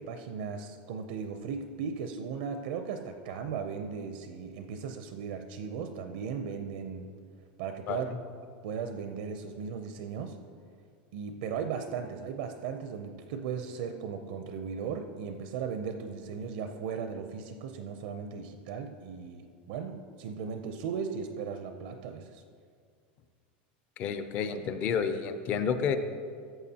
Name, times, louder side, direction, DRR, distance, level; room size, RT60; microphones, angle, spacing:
voice 1, 0.0-7.1 7.6-8.1 8.6-10.4 11.1-22.4, right 6 dB, 60° right, 7 dB, 0.5 m, -37 dB
voice 2, 24.0-26.0, left 7 dB, 30° left, 9 dB, 0.5 m, -30 dB
13.5 x 7.2 x 2.8 m, 2.1 s
supercardioid pair, 175°, 5 cm